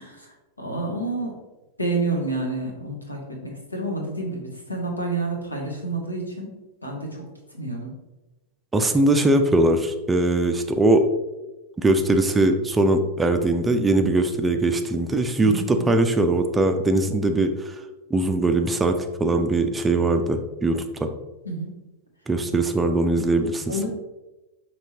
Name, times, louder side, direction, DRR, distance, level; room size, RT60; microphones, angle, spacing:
voice 1, 0.0-1.3 1.8-6.5 6.8-7.9 15.4-15.9 21.4-21.8 22.5-22.6 23.7-23.9, right 2 dB, 85° left, 0 dB, 0.9 m, -29 dB
voice 2, 8.7-11.1 11.8-17.7 18.1-21.1 22.3-23.7, right 2 dB, 15° right, 6 dB, 0.4 m, -21 dB
5.6 x 2.9 x 2.8 m, 1.0 s
figure-of-eight pair, 90°, 0 cm